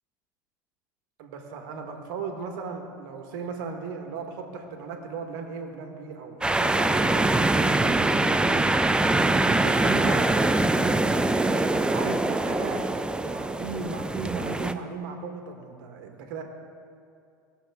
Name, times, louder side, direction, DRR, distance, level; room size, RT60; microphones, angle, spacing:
voice 1, 1.2-8.6 9.3-10.9 11.4-12.9 13.2-16.4, right 4 dB, 75° right, 4 dB, 1.5 m, -37 dB
sound 1, 6.4-14.7, right 2 dB, 10° right, 0.5 m, -23 dB
18.0 x 6.9 x 3.6 m, 2.4 s
hypercardioid pair, 75°, 11 cm